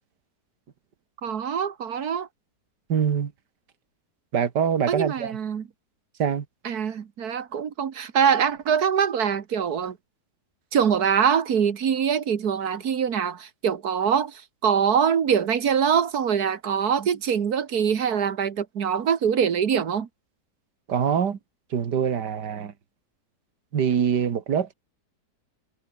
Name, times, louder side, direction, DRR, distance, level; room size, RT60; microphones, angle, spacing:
voice 1, 1.2-2.3 4.9-5.7 6.6-10.0 10.7-20.1, right 7 dB, 65° right, 1.8 m, -24 dB
voice 2, 2.9-3.3 4.3-5.4 6.2-6.5 20.9-21.4 21.7-22.7 23.7-24.7, right 7 dB, 80° right, 2.2 m, -24 dB
omnidirectional pair, 1.8 m